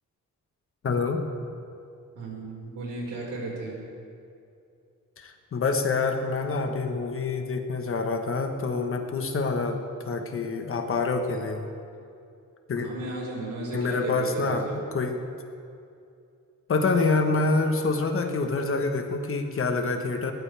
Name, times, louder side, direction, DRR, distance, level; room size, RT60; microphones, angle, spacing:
voice 1, 0.8-1.2 5.2-11.7 12.7-12.9 13.7-15.2 16.7-20.3, left 3 dB, 45° left, 5 dB, 1.2 m, -26 dB
voice 2, 2.1-3.8 12.7-14.8, right 2 dB, 85° right, -3 dB, 5.0 m, -34 dB
20.5 x 17.5 x 3.4 m, 2.6 s
wide cardioid pair, 180°, 31 cm